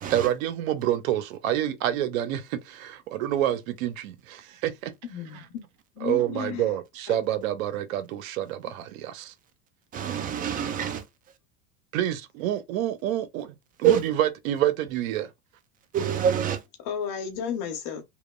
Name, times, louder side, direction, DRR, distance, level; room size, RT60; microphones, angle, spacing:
voice 1, 0.1-4.9 5.3-5.4 6.0-9.3 11.9-13.5 13.8-15.3, right 12 dB, 85° right, 0.5 m, -28 dB
voice 2, 5.0-5.6 6.0-6.7 7.1-7.2 16.8-18.0, left 7 dB, 55° left, 0.8 m, -33 dB
voice 3, 9.9-11.0 13.8-14.0 15.9-16.6, right 9 dB, 25° right, 0.3 m, -25 dB
2.9 x 2.0 x 2.2 m
supercardioid pair, 110°, 40 cm